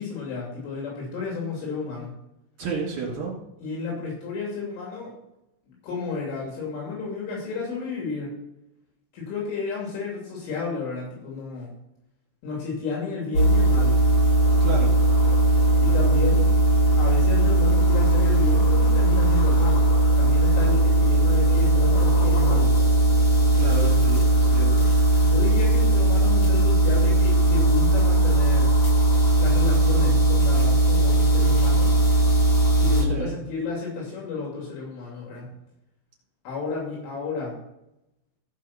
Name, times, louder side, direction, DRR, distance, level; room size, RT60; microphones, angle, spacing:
voice 1, 0.0-2.1 3.6-5.1 5.7-8.3 9.1-11.7 12.4-14.0 15.8-16.5 17.0-19.9 20.2-22.8 25.2-28.7 29.4-32.0 32.8-35.5 36.5-37.6, left 4 dB, 80° left, -3 dB, 5.2 m, -32 dB
voice 2, 2.6-3.4 14.6-14.9 20.7-20.9 23.5-25.3 33.1-33.4, right 4 dB, 45° right, -4 dB, 3.9 m, -32 dB
sound 1, 13.3-33.0, right 1 dB, 50° left, 1.7 m, -19 dB
15.5 x 5.5 x 5.9 m, 0.84 s
omnidirectional pair, 5.5 m